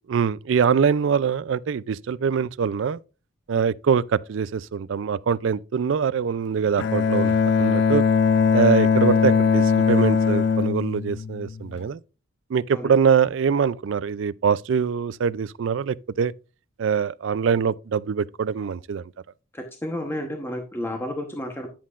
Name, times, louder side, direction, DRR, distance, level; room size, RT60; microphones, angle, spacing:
voice 1, 0.1-3.0 3.5-8.0 8.5-12.0 12.5-16.3 16.8-19.0, right 6 dB, 60° right, 0.3 m, -23 dB
Bowed string instrument, 6.8-11.8, left 6 dB, 50° left, 0.4 m, -20 dB
voice 2, 19.5-21.7, left 1 dB, 10° left, 1.0 m, -31 dB
10.5 x 7.4 x 2.4 m
head